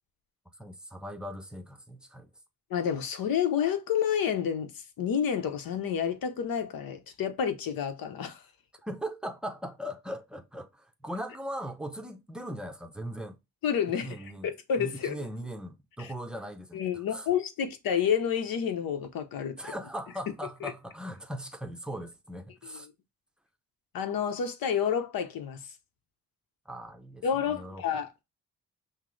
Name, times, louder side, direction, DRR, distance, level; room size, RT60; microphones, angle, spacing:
voice 1, 0.6-2.3 8.8-13.4 14.0-14.5 14.8-17.3 19.6-22.9 26.7-27.8, equal, ahead, 0.6 m, -39 dB
voice 2, 2.7-8.4 13.6-14.2 14.4-15.2 16.0-16.1 16.7-19.6 20.6-20.7 22.6-22.8 23.9-25.7 27.2-28.1, left 8 dB, 75° left, 0.9 m, -29 dB
5.7 x 2.1 x 3.2 m
cardioid pair, 95°, 35 cm